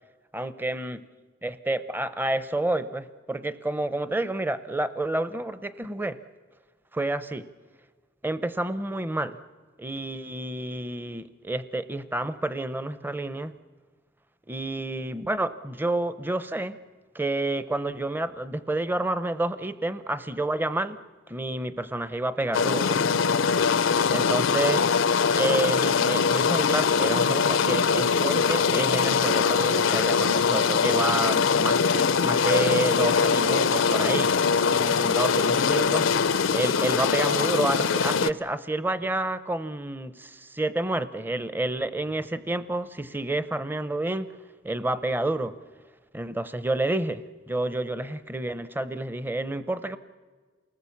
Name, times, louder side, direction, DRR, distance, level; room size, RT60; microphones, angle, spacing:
voice 1, 0.3-1.0 1.4-6.2 6.9-7.5 8.2-9.4 9.8-13.5 14.5-16.8 17.1-21.0 21.3-23.0 24.1-24.8 25.3-34.3 34.8-36.1 36.5-44.3 44.6-45.5 46.1-47.2 47.5-50.0, right 2 dB, 10° right, 13 dB, 0.6 m, -29 dB
sound 1, 22.5-38.3, left 5 dB, 80° left, 0.6 m, -22 dB
28.5 x 19.5 x 7.1 m, 1.5 s
head